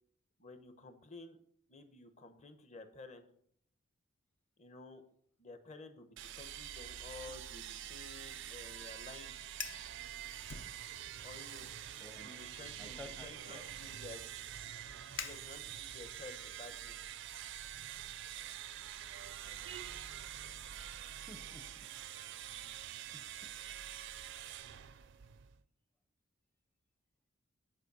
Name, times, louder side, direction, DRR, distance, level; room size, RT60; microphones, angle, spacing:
voice 1, 0.4-1.4 1.7-3.3 4.6-5.0 5.4-9.4 11.2-14.2 15.2-17.0, left 3 dB, 35° left, 8 dB, 0.9 m, -52 dB
sound 1, 6.2-25.6, right 11 dB, 60° right, 0.4 m, -46 dB
Fire, 9.6-9.9 10.5-11.2 11.6-11.9 12.6-16.0, left 6 dB, 60° left, 0.8 m, -48 dB
voice 2, 12.0-12.3 12.8-13.6 21.2-21.9 23.1-23.5, left 1 dB, 10° left, 6 dB, 0.6 m, -53 dB
9.8 x 4.9 x 5.4 m, 0.66 s
head